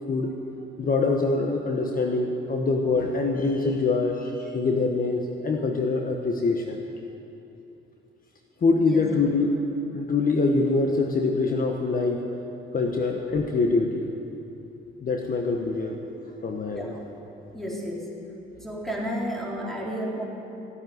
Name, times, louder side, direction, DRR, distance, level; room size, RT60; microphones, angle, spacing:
voice 1, 0.8-6.8 8.6-9.6 9.9-12.2 12.7-14.1 15.0-16.0 16.4-16.9, left 3 dB, 45° left, 2 dB, 1.4 m, -24 dB
voice 2, 16.7-17.1 17.5-18.1 18.6-20.2, equal, ahead, -3 dB, 3.8 m, -32 dB
15.5 x 9.3 x 9.6 m, 2.9 s
cardioid pair, 90°, 20 cm